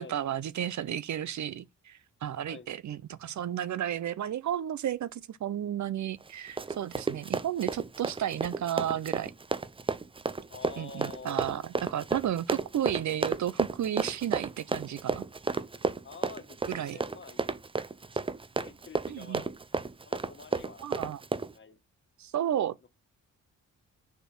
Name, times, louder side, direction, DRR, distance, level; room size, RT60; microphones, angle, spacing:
voice 1, 0.0-9.3 10.8-11.6 11.9-15.3 16.7-17.0 19.1-19.4 20.8-21.2 22.2-22.9, right 10 dB, 60° right, 0.6 m, -33 dB
Run, 6.2-21.5, right 4 dB, 15° right, 0.5 m, -32 dB
voice 2, 10.5-11.4 16.0-17.4 18.6-19.5 20.0-20.8 21.5-21.8, left 5 dB, 35° left, 1.4 m, -47 dB
6.8 x 4.4 x 5.9 m
wide cardioid pair, 120°, 32 cm